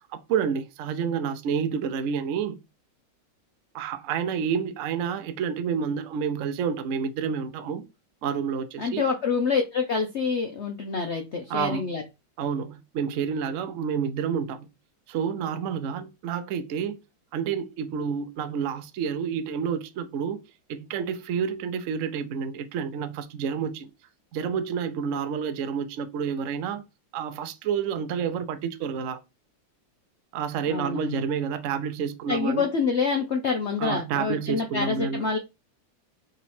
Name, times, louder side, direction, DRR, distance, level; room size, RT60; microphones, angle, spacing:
voice 1, 0.1-2.6 3.7-7.9 8.2-9.1 11.5-11.9 12.4-14.7 15.1-17.0 17.3-20.4 20.7-23.9 24.3-26.8 27.1-29.2 30.3-32.7 33.8-35.3, right 7 dB, 85° right, 0.6 m, -29 dB
voice 2, 8.8-12.0 30.7-31.2 32.3-35.4, left 5 dB, 90° left, 0.6 m, -27 dB
3.9 x 3.0 x 4.2 m
omnidirectional pair, 2.1 m